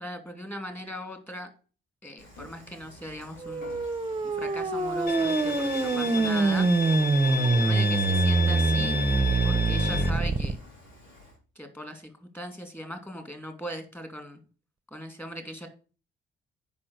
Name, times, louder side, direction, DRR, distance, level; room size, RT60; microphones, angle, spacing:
voice 1, 0.0-1.5 2.0-3.7 4.2-6.7 7.3-9.0 9.4-10.6 11.6-14.4 14.9-15.7, equal, 10° left, 7 dB, 2.6 m, -39 dB
Dishes pots and pans / Frying (food), 2.2-11.4, left 1 dB, 85° left, 4.3 m, -50 dB
sound 1, 3.4-10.5, right 3 dB, 25° right, 1.0 m, -24 dB
Bowed string instrument, 5.1-10.1, left 4 dB, 55° left, 0.9 m, -32 dB
8.6 x 5.5 x 6.6 m, 0.37 s
cardioid pair, 90°, 20 cm